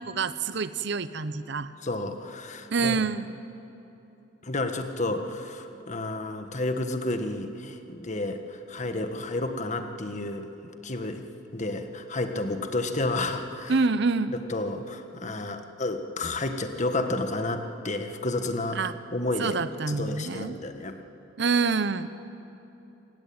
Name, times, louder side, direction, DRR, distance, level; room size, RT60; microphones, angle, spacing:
voice 1, 0.1-1.7 2.7-3.4 13.7-14.4 18.7-18.9 19.4-20.6 21.4-22.1, right 4 dB, 60° right, 13 dB, 0.8 m, -26 dB
voice 2, 1.8-3.0 4.4-11.3 11.5-13.7 14.5-18.8 19.1-19.5 19.9-21.0, left 2 dB, 40° left, 6 dB, 1.6 m, -31 dB
27.0 x 18.5 x 8.9 m, 3.0 s
head